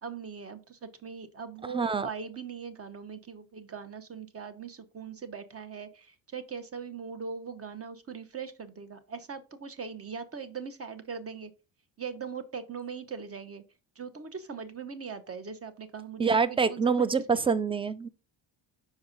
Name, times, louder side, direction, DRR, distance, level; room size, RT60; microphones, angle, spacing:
voice 1, 0.0-11.5 12.0-13.6 14.0-17.1, right 6 dB, 30° right, 0.8 m, -40 dB
voice 2, 1.7-2.1 16.2-18.1, right 5 dB, 15° right, 0.3 m, -26 dB
5.4 x 4.7 x 3.8 m
cardioid pair, 85°, 46 cm